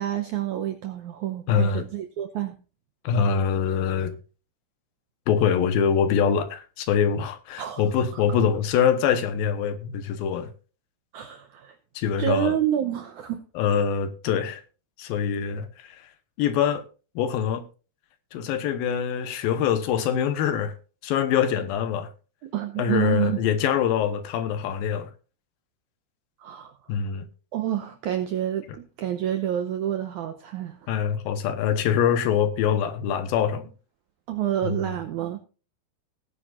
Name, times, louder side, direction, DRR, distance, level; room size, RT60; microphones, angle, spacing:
voice 1, 0.0-2.5 7.6-7.8 8.1-8.2 11.1-11.8 12.2-13.4 22.5-23.4 26.4-26.7 27.5-30.9 34.3-35.4, right 11 dB, 80° right, 1.7 m, -28 dB
voice 2, 1.5-1.9 3.0-4.2 5.3-10.5 12.0-12.6 13.6-14.6 15.0-16.1 16.4-16.9 17.2-17.6 18.3-20.7 21.0-22.1 22.8-25.1 26.9-27.3 30.9-33.7 34.6-35.0, left 8 dB, 75° left, 2.7 m, -24 dB
18.0 x 10.0 x 2.5 m
omnidirectional pair, 4.4 m